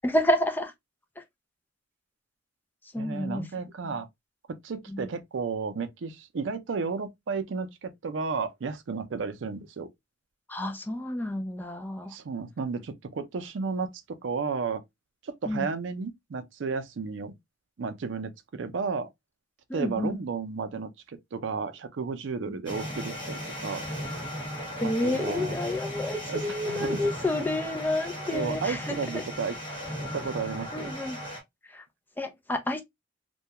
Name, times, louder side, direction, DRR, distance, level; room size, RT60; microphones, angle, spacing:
voice 1, 0.0-0.7 1.2-1.3 2.9-3.5 3.8-3.9 4.9-5.1 10.5-12.1 15.5-15.7 19.7-20.2 24.8-29.2 30.7-31.2 31.7-31.8 32.2-32.8, left 1 dB, 10° left, 0.3 m, -29 dB
voice 2, 3.0-4.1 4.6-9.9 12.1-14.8 15.2-17.3 17.8-19.1 19.7-23.8 24.8-25.5 26.3-26.4 26.7-27.0 28.3-29.5 30.1-30.9, right 5 dB, 85° right, 0.5 m, -33 dB
sound 1, 22.7-31.4, equal, 25° left, 0.8 m, -36 dB
2.2 x 2.2 x 2.7 m
head